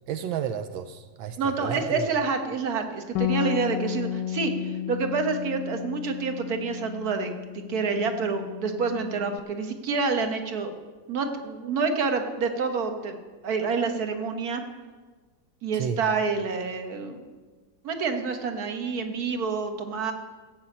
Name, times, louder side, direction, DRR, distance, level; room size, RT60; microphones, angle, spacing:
voice 1, 0.1-2.1 15.8-16.0, right 8 dB, 85° right, 9 dB, 1.5 m, -32 dB
voice 2, 1.4-7.3 7.7-10.7 11.1-13.2 13.4-14.6 15.6-17.3 17.8-20.1, right 4 dB, 55° right, 6 dB, 1.8 m, -28 dB
Bass guitar, 3.2-9.4, left 12 dB, 75° left, 1.1 m, -33 dB
14.5 x 7.9 x 8.6 m, 1.4 s
omnidirectional pair, 2.1 m